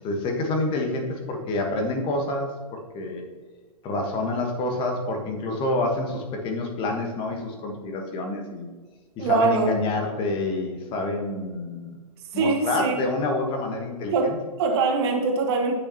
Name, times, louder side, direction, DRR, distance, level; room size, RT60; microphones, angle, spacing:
voice 1, 0.0-3.2 3.8-8.7 9.2-12.0 12.3-14.4, left 2 dB, 25° left, 2 dB, 1.3 m, -28 dB
voice 2, 9.2-9.7 12.3-13.0 14.1-15.8, right 4 dB, 45° right, 2 dB, 1.4 m, -23 dB
9.9 x 6.3 x 2.9 m, 1.4 s
figure-of-eight pair, 110°, 19 cm